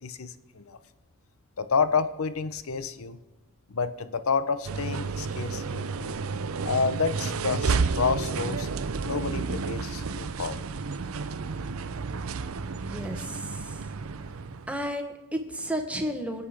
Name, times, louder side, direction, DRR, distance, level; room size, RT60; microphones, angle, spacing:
voice 1, 0.0-0.8 1.6-3.2 3.7-6.1 6.6-8.7 9.0-10.6, left 5 dB, 70° left, 13 dB, 0.8 m, -29 dB
sound 1, 4.6-14.9, right 4 dB, 70° right, 0.6 m, -31 dB
voice 2, 12.7-13.9 14.7-16.5, equal, 5° right, 4 dB, 1.2 m, -33 dB
22.5 x 8.3 x 4.9 m, 1.1 s
head